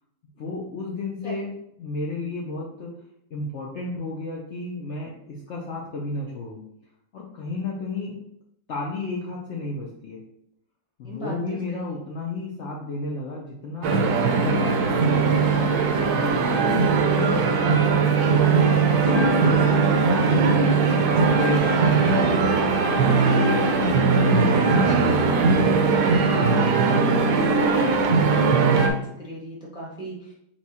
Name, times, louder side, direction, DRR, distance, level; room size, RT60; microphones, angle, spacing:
voice 1, 0.4-1.5 1.8-2.9 3.3-6.6 7.1-8.2 8.7-10.2 11.0-14.0 14.3-15.3 16.2-16.4 16.6-16.8 17.1-18.3 18.9-22.3 23.1-26.0 26.4-26.7 26.9-27.5, left 3 dB, 90° left, -3 dB, 0.6 m, -32 dB
voice 2, 11.0-12.0 16.3-16.9 19.0-19.4 26.8-27.3 28.2-30.3, equal, 5° right, -5 dB, 0.5 m, -36 dB
Symphony Warm Up, 13.8-28.9, right 4 dB, 70° right, 1.0 m, -20 dB
4.5 x 2.3 x 4.2 m, 0.74 s
omnidirectional pair, 2.1 m